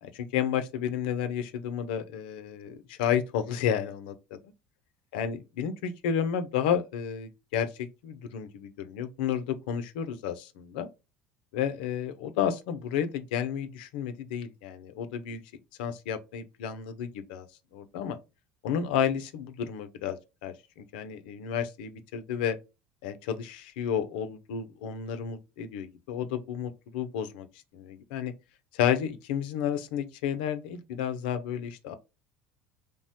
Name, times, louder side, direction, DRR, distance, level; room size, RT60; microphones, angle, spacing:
voice 1, 0.0-4.4 5.1-10.9 11.5-15.4 15.8-17.5 17.7-18.2 18.6-22.6 23.0-27.5 27.7-28.3 28.7-31.9, left 8 dB, 80° left, 0.4 m, -31 dB
3.2 x 2.1 x 2.7 m
supercardioid pair, 85°, 5 cm